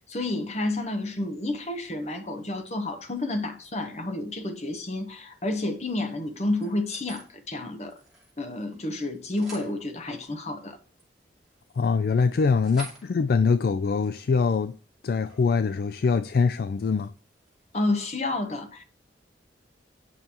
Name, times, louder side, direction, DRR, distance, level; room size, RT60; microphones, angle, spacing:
voice 1, 0.1-8.0 8.4-10.8 17.7-18.8, left 2 dB, 35° left, 1.0 m, -30 dB
sound 1, 5.8-7.3 7.7-8.9 9.1-9.7 10.6-15.6 15.9-16.2 16.5-18.0, right 3 dB, 5° right, 2.4 m, -50 dB
voice 2, 11.8-14.7 15.0-17.1, left 5 dB, 55° left, 0.3 m, -23 dB
8.7 x 5.4 x 2.9 m
head